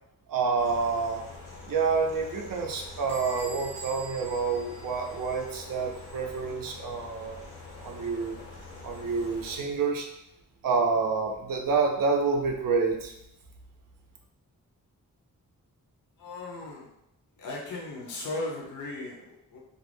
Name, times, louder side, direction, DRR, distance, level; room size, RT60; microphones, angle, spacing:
voice 1, 0.3-1.2 1.7-7.4 7.8-8.4 8.8-10.1 10.6-13.1, right 4 dB, 75° right, 1 dB, 0.5 m, -28 dB
sound 1, 0.6-9.6, left 3 dB, 90° left, 1.1 m, -45 dB
Bell / Squeak, 3.1-5.6, right 3 dB, 5° left, 0.5 m, -45 dB
voice 2, 16.2-16.9 17.4-19.6, left 2 dB, 60° left, -4 dB, 0.5 m, -37 dB
2.3 x 2.1 x 3.1 m, 0.81 s
wide cardioid pair, 175°, 34 cm